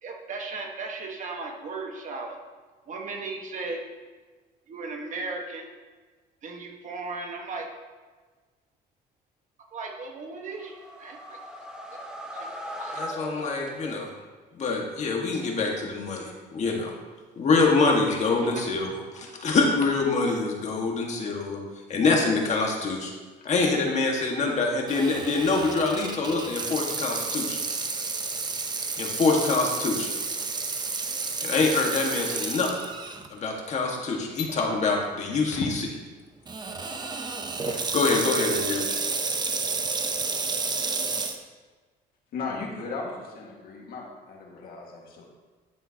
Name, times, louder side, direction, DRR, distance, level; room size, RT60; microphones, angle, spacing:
voice 1, 0.0-2.4 2.9-3.8 4.7-5.7 6.4-7.7 9.7-11.4 11.9-12.0 12.3-12.5 12.7-13.1 18.6-18.7, right 3 dB, 45° right, 1 dB, 1.5 m, -36 dB
sound 1, 10.5-14.2, equal, 5° right, 1.2 m, -39 dB
voice 2, 12.9-14.1 14.5-17.0 17.3-21.6 21.9-23.1 23.4-27.6 29.0-30.1 31.4-32.7 33.3-35.7 37.9-38.8, left 3 dB, 45° left, 0 dB, 1.7 m, -25 dB
Water tap faucet / Sink (filling or washing), 24.9-33.3 33.8-33.9 34.6-34.9 36.5-41.4, right 4 dB, 25° right, 0.8 m, -31 dB
voice 3, 37.7-38.0 38.7-38.8 42.3-45.2, left 4 dB, 60° left, -1 dB, 1.9 m, -36 dB
11.0 x 7.2 x 2.9 m, 1.4 s
cardioid pair, 110°, 17 cm